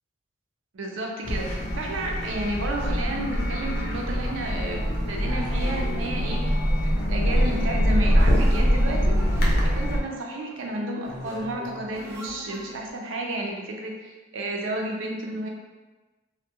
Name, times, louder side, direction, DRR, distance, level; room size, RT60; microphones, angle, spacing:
voice 1, 0.7-6.4 6.8-9.2 9.6-15.5, right 1 dB, 85° right, 0 dB, 0.5 m, -32 dB
sound 1, 1.2-10.0, equal, 55° left, 0.5 m, -23 dB
sound 2, 5.4-12.9, equal, 15° right, 0.4 m, -41 dB
2.3 x 2.1 x 2.8 m, 1.2 s
head